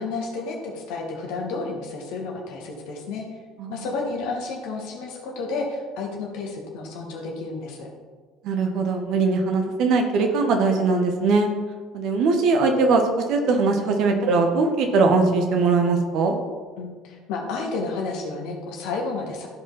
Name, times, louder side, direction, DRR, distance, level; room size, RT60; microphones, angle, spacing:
voice 1, 0.0-3.2 3.7-7.9 16.8-19.5, left 3 dB, 60° left, 0 dB, 2.0 m, -31 dB
voice 2, 8.4-11.5 11.9-13.0 13.3-16.3, right 4 dB, 55° right, 4 dB, 1.4 m, -21 dB
14.5 x 5.3 x 4.1 m, 1.5 s
figure-of-eight pair, 60°, 0 cm